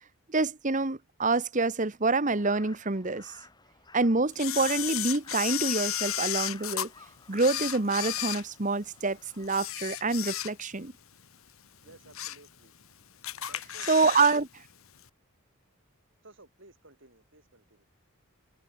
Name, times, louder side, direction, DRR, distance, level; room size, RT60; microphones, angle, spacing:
voice 1, 0.3-3.3 3.9-6.9 7.3-10.9 13.9-14.5, right 3 dB, 35° right, 1.2 m, -27 dB
Crow, 2.3-9.7, left 3 dB, 20° left, 4.1 m, -52 dB
Camera, 4.4-6.9 7.3-9.0 9.4-10.8 11.2-11.4 11.9-12.5 12.8-12.9 13.2-14.4 14.7-14.8, left 13 dB, 75° left, 2.2 m, -33 dB
voice 2, 11.8-12.7 13.4-14.2 16.2-17.8, right 2 dB, 60° right, 6.3 m, -56 dB
head